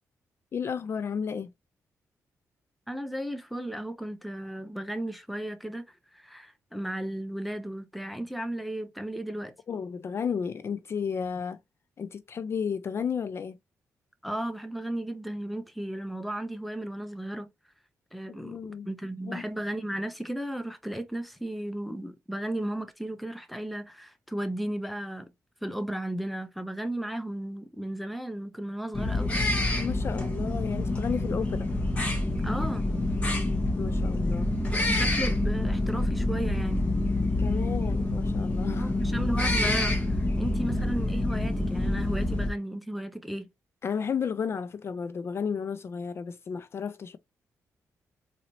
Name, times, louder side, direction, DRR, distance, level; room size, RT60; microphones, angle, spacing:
voice 1, 0.5-1.5 9.7-11.6 12.0-13.6 18.3-18.9 19.3-19.4 29.8-31.7 33.8-34.5 37.4-39.0 43.8-47.2, left 6 dB, 45° left, 0.3 m, -33 dB
voice 2, 2.9-5.8 6.1-9.5 14.2-17.5 18.1-25.3 25.6-29.3 32.4-32.9 34.9-36.9 38.8-43.5, right 1 dB, ahead, 0.6 m, -35 dB
sound 1, 28.9-42.5, left 2 dB, 20° left, 1.2 m, -27 dB
4.0 x 2.7 x 2.9 m
cardioid pair, 120°, 6 cm